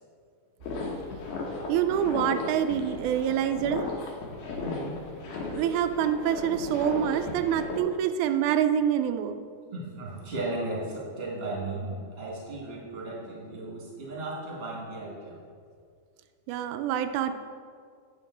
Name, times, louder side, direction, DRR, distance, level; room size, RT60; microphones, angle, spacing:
sound 1, 0.6-7.8, left 3 dB, 85° left, 2.6 m, -35 dB
voice 1, 1.7-3.9 5.6-9.4 16.5-17.3, right 9 dB, 85° right, 9 dB, 2.0 m, -26 dB
voice 2, 4.6-4.9 9.7-15.4, right 2 dB, 20° right, -5 dB, 2.0 m, -35 dB
9.5 x 6.7 x 3.9 m, 2.1 s
omnidirectional pair, 3.4 m